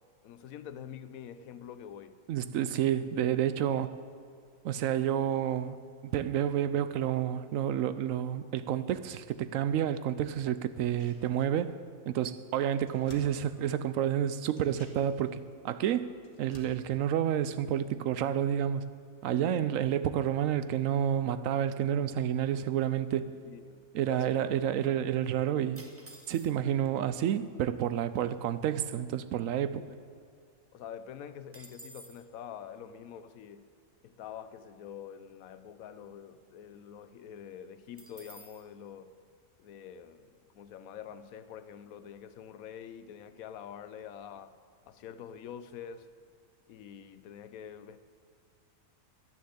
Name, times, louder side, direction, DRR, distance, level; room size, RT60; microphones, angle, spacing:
voice 1, 0.2-2.1 19.4-19.8 23.5-24.5 24.8-25.1 29.8-30.0 30.7-33.7 34.0-39.1 39.6-44.5 44.8-46.1 46.7-48.0, left 8 dB, 80° left, 1.1 m, -46 dB
voice 2, 2.3-3.9 4.6-11.7 12.1-16.1 16.4-18.8 19.2-23.3 23.9-25.8 26.3-29.8, right 10 dB, 75° right, 0.9 m, -30 dB
sound 1, 10.7-11.9 12.2-12.3 12.5-14.1 14.5-18.2 18.5-18.6, left 3 dB, 40° left, 1.6 m, -56 dB
sound 2, 25.8-26.8 27.6-27.7 27.9-28.3 28.7-30.2 30.5-30.6 30.9-32.3 38.0-38.7, right 2 dB, 20° right, 0.4 m, -53 dB
10.5 x 10.0 x 7.9 m
omnidirectional pair, 1.5 m